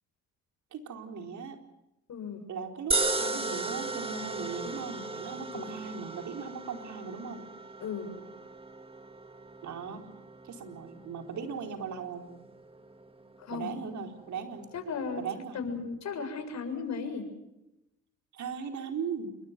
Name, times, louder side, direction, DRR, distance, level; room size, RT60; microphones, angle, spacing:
voice 1, 0.7-1.6 2.5-7.5 9.6-10.1 10.4-12.3 13.5-14.7 15.2-15.6 18.3-19.4, right 6 dB, 70° right, 4 dB, 4.4 m, -38 dB
voice 2, 2.1-2.4 5.5-5.7 7.8-8.1 13.4-13.7 14.7-15.2 15.5-17.2, left 5 dB, 65° left, 6 dB, 7.1 m, -35 dB
sound 1, 2.9-15.2, right 3 dB, 20° right, 2.3 m, -37 dB
28.5 x 24.0 x 6.1 m, 0.92 s
cardioid pair, 90°, 30 cm